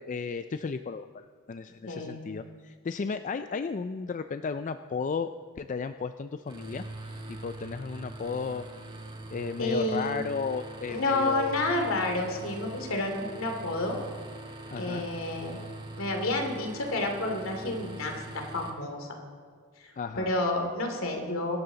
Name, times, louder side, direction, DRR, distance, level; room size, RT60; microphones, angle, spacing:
voice 1, 0.0-5.3 5.6-6.8 7.3-8.6 9.3-11.6 14.7-15.1 20.0-20.3, left 5 dB, 35° left, 10 dB, 0.3 m, -34 dB
voice 2, 1.9-2.2 9.6-10.2 10.9-14.0 14.8-15.6 16.0-19.1 19.8-21.6, left 2 dB, 70° left, 3 dB, 2.7 m, -30 dB
sound 1, 6.5-18.7, right 2 dB, 20° right, 1.7 m, -43 dB
24.5 x 12.5 x 4.0 m, 2.1 s
head